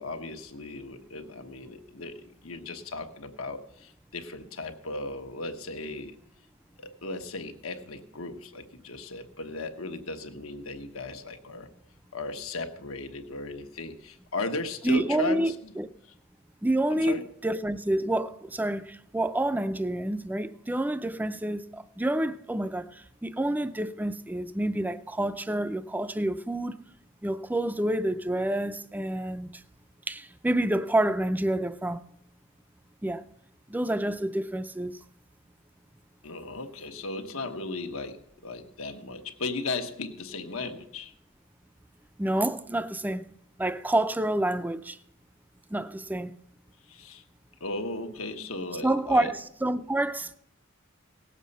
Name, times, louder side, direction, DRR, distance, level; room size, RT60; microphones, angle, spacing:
voice 1, 0.0-6.2 6.8-11.7 12.1-15.7 16.9-17.2 36.2-41.1 46.9-47.2 47.6-49.3, left 3 dB, 85° left, 1.2 m, -36 dB
voice 2, 14.8-15.9 16.6-26.8 27.2-29.6 30.1-32.0 33.0-33.2 33.7-35.0 42.2-43.2 43.6-45.0 45.7-46.3 48.8-50.3, right 1 dB, 10° right, 0.4 m, -28 dB
18.0 x 7.3 x 5.4 m
head